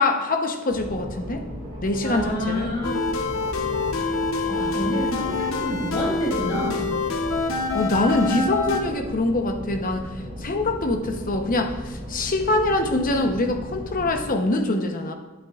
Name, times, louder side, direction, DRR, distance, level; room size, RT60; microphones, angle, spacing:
voice 1, 0.0-1.4 1.8-2.7 7.7-10.1 10.4-15.1, left 2 dB, 40° left, 4 dB, 0.9 m, -24 dB
sound 1, 0.7-14.3, equal, 25° right, 2.2 m, -36 dB
voice 2, 2.0-2.9 3.4-3.5 4.0-4.1 4.5-6.9, equal, 25° left, -7 dB, 2.9 m, -29 dB
sound 2, 2.8-8.8, left 3 dB, 75° left, 0.8 m, -26 dB
11.0 x 9.2 x 2.4 m, 1.3 s
head